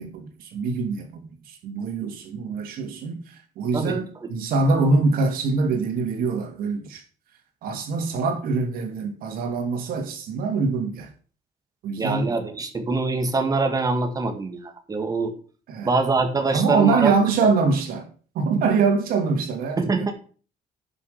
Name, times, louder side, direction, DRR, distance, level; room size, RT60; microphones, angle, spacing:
voice 1, 0.0-7.0 7.6-11.1 11.8-12.3 15.7-15.9 16.5-18.1 18.3-20.1, right 4 dB, 80° right, 2.5 m, -24 dB
voice 2, 12.0-15.3 15.8-17.1 19.8-20.1, right 3 dB, 25° right, 1.8 m, -24 dB
10.5 x 6.0 x 5.9 m
cardioid pair, 125°, 15 cm